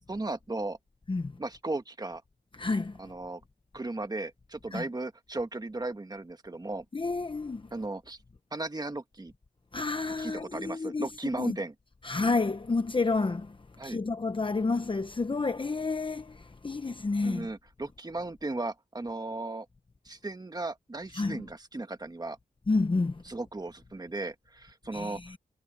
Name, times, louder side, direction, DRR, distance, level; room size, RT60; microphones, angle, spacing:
voice 1, 0.1-0.8 1.4-2.2 3.0-3.4 3.7-6.8 7.7-8.2 8.5-9.3 10.2-11.7 13.8-14.0 17.2-19.7 20.0-22.4 23.3-25.2, right 2 dB, 25° right, 1.5 m, -36 dB
voice 2, 2.5-3.0 4.7-4.8 6.9-7.7 9.7-11.1 11.4-11.6 12.0-13.6 13.8-17.5 21.1-21.5 22.7-23.2 24.9-25.4, left 3 dB, 30° left, 0.9 m, -30 dB
wide cardioid pair, 90°, 17 cm